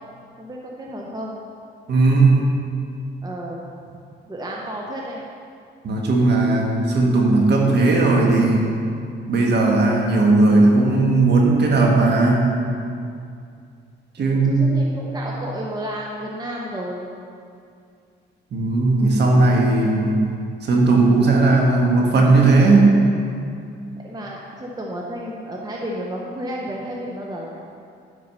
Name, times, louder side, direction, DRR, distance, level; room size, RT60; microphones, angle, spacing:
voice 1, 0.4-1.4 3.2-3.6 4.2-5.2 14.2-17.1 24.0-27.6, equal, 20° right, -2 dB, 1.0 m, -32 dB
voice 2, 1.9-2.5 5.8-8.7 9.3-12.5 14.1-14.8 18.5-20.3 20.6-22.9, right 3 dB, 60° right, -1 dB, 1.4 m, -16 dB
9.6 x 4.7 x 5.6 m, 2.4 s
cardioid pair, 90°, 20 cm